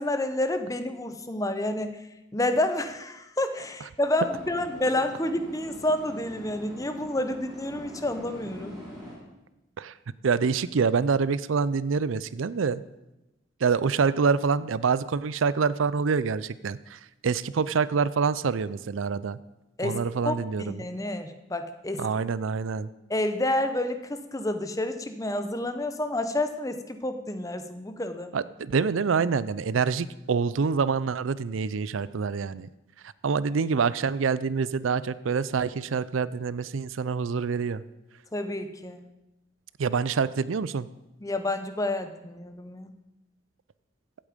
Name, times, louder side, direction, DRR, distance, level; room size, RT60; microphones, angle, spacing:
voice 1, 0.0-1.9 2.3-8.7 19.8-20.0 20.2-22.1 23.1-28.3 38.3-39.0 41.2-42.9, left 1 dB, 15° left, 9 dB, 0.8 m, -29 dB
sound 1, 4.1-9.2, left 1 dB, 5° right, 6.1 m, -43 dB
voice 2, 10.2-12.8 13.6-19.4 19.8-20.8 22.0-22.9 28.3-32.7 33.2-37.8 39.8-40.9, right 5 dB, 85° right, 17 dB, 0.5 m, -26 dB
16.0 x 8.6 x 5.1 m, 0.96 s
head